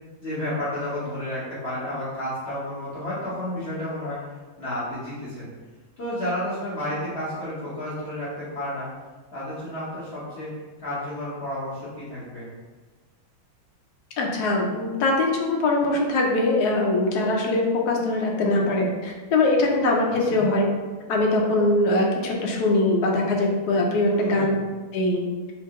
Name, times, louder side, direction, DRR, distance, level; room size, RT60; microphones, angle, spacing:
voice 1, 0.2-4.2 4.6-5.5 6.0-8.9 9.3-10.5 10.8-12.5 20.3-20.4 24.0-24.5, left 1 dB, 40° left, -11 dB, 1.0 m, -31 dB
voice 2, 14.2-20.7 21.1-24.5 24.9-25.2, left 2 dB, 65° left, -1 dB, 1.0 m, -22 dB
4.6 x 2.7 x 3.7 m, 1.3 s
omnidirectional pair, 2.3 m